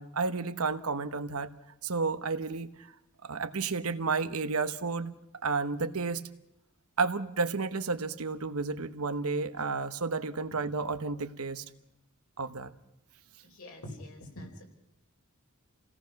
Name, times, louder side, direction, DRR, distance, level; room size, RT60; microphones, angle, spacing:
voice 1, 0.0-1.5 1.8-2.9 3.2-5.1 5.4-6.2 7.0-11.6 12.4-12.7, right 4 dB, 80° right, 11 dB, 1.0 m, -31 dB
voice 2, 13.4-14.7, left 1 dB, 75° left, 2 dB, 4.6 m, -45 dB
28.5 x 17.5 x 5.9 m, 0.83 s
head